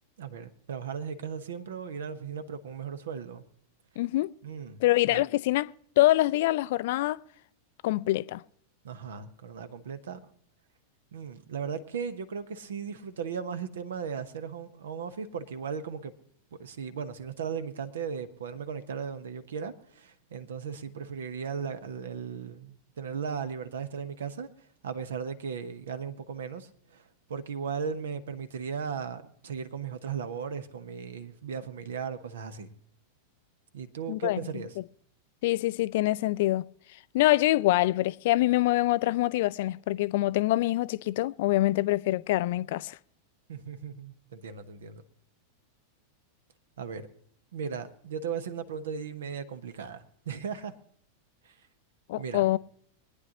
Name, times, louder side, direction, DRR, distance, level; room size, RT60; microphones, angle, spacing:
voice 1, 0.2-3.4 4.4-4.8 5.1-5.3 8.8-10.2 11.1-16.1 16.6-24.5 24.8-27.0 27.3-32.7 33.7-34.7 43.5-45.0 46.8-47.1 47.5-50.7 51.4-51.5 52.2-52.4, right 6 dB, 65° right, 1.0 m, -37 dB
voice 2, 4.0-4.3 4.8-7.2 7.8-8.4 34.1-34.4 35.4-36.7 37.1-43.0 52.1-52.6, left 17 dB, 50° left, 0.4 m, -25 dB
24.0 x 9.8 x 2.9 m
figure-of-eight pair, 90°, 0 cm